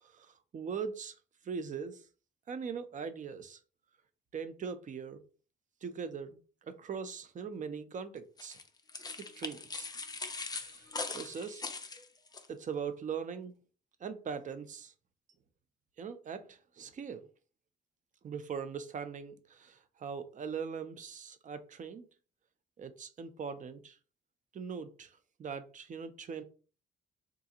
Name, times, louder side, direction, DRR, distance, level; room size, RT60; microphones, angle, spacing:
voice 1, 0.5-1.1 1.5-2.0 2.5-3.6 4.3-5.2 5.8-8.6 9.4-9.9 10.5-10.8 11.1-11.6 12.5-13.6 14.0-14.9 16.0-17.2 18.2-22.0 22.8-23.9 24.5-25.1 25.4-26.4, right 6 dB, 40° right, 10 dB, 0.5 m, -40 dB
sound 1, 8.4-12.5, left 3 dB, 20° left, 0.5 m, -41 dB
3.7 x 2.4 x 2.8 m, 0.37 s
cardioid pair, 90°, 20 cm